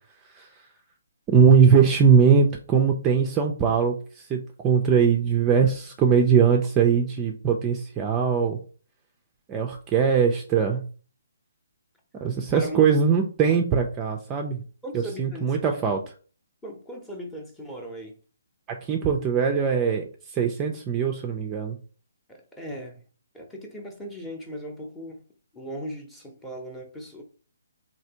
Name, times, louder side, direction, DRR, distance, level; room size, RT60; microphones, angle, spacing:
voice 1, 1.3-8.6 9.5-10.8 12.2-14.6 14.9-16.0 18.7-21.8, right 6 dB, 20° right, 0.4 m, -21 dB
voice 2, 14.8-15.8 16.6-18.1 22.3-23.0 23.3-25.2 25.5-27.2, equal, 5° left, 0.7 m, -38 dB
3.2 x 2.7 x 2.8 m
figure-of-eight pair, 145°, 0 cm